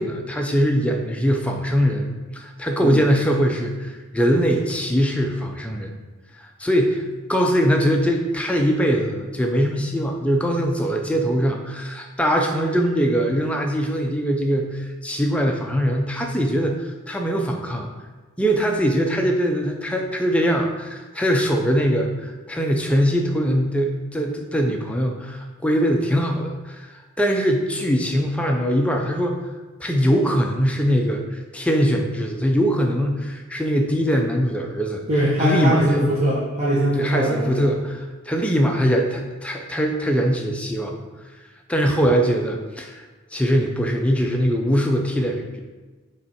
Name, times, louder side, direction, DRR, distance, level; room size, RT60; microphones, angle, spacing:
voice 1, 0.0-5.9 6.3-7.0 7.3-17.9 18.4-29.4 29.8-35.0 35.4-36.1 36.9-41.0 41.7-43.0 43.3-45.6, equal, 5° left, 2 dB, 0.4 m, -22 dB
voice 2, 35.1-37.6, equal, 30° right, -7 dB, 0.8 m, -21 dB
7.2 x 3.1 x 4.2 m, 1.3 s
head